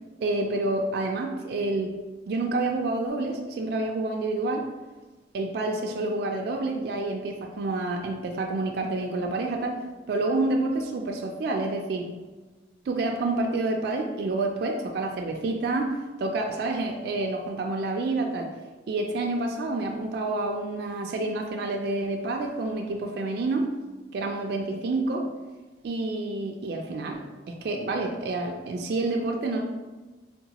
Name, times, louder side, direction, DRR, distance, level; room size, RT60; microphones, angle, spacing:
voice 1, 0.2-1.9 2.3-4.7 5.3-9.8 10.1-12.1 12.9-18.5 18.9-23.7 24.1-25.3 25.8-29.6, right 2 dB, 60° right, 1 dB, 0.3 m, -28 dB
3.8 x 2.1 x 2.8 m, 1.2 s
head